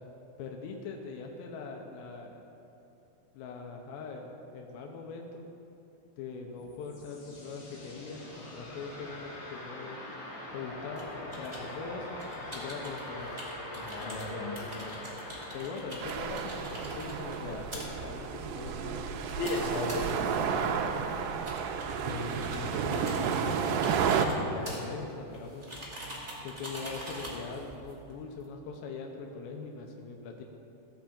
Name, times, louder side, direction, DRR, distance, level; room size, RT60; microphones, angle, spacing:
voice 1, 0.4-2.4 3.3-5.5 6.2-10.0 10.5-13.3 14.0-15.1 15.5-19.3 22.0-25.8 26.4-30.4, left 4 dB, 85° left, 2 dB, 3.0 m, -42 dB
sound 1, 6.6-19.2, left 1 dB, 45° left, 1.6 m, -44 dB
sound 2, 10.9-28.5, right 1 dB, 40° right, 0.5 m, -45 dB
voice 2, 13.7-14.7 19.3-20.6, left 3 dB, 60° left, -1 dB, 3.0 m, -36 dB
sound 3, 16.0-24.3, right 6 dB, 80° right, 2.7 m, -31 dB
15.5 x 5.8 x 7.4 m, 2.9 s
omnidirectional pair, 5.1 m